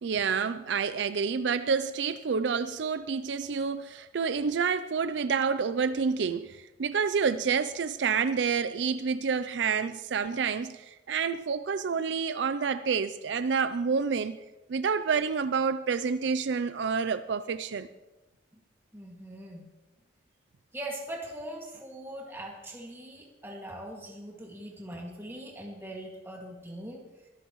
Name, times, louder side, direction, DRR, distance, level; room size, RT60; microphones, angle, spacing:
voice 1, 0.0-14.4 14.7-17.9, right 5 dB, 70° right, 0.4 m, -28 dB
voice 2, 18.9-19.7 20.7-27.0, right 1 dB, 15° right, 2.0 m, -41 dB
23.0 x 13.5 x 3.1 m
head